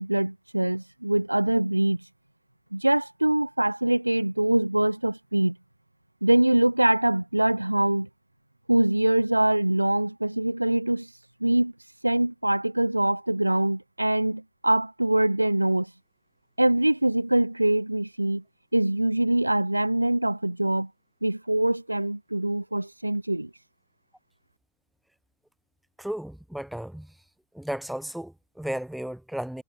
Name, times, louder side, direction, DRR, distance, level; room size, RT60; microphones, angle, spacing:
voice 1, 0.0-2.0 2.7-5.6 6.2-8.1 8.7-11.1 11.4-11.7 12.0-15.9 16.6-18.4 18.7-20.9 21.2-23.5, right 1 dB, 85° right, 0.3 m, -23 dB
voice 2, 26.0-27.1 27.5-29.6, right 1 dB, ahead, 0.4 m, -34 dB
figure-of-eight pair, 90°, 0 cm